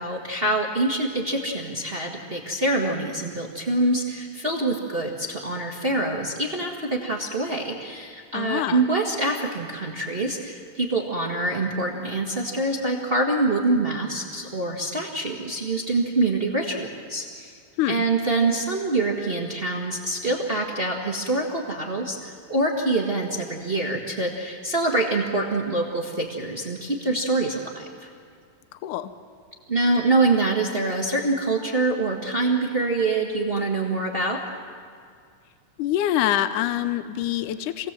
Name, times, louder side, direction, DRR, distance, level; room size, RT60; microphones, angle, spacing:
voice 1, 0.0-17.5 17.9-28.1 29.7-34.4, right 2 dB, 30° right, 0 dB, 1.0 m, -25 dB
voice 2, 8.3-8.8 17.8-18.1 28.7-29.1 35.8-37.9, left 12 dB, 75° left, 11 dB, 2.0 m, -25 dB
27.5 x 18.5 x 7.5 m, 2.2 s
omnidirectional pair, 4.0 m